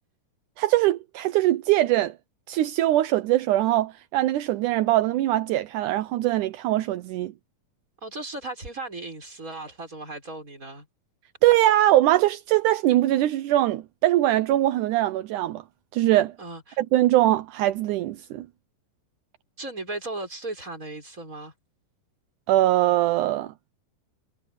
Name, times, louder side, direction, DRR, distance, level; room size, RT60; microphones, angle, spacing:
voice 1, 0.6-2.1 2.5-7.3 11.4-15.6 15.9-16.3 16.8-18.5 22.5-23.5, right 15 dB, 75° right, 2.0 m, -22 dB
voice 2, 8.0-10.9 16.4-16.8 19.6-21.5, right 2 dB, 20° right, 6.2 m, -36 dB
omnidirectional pair, 4.2 m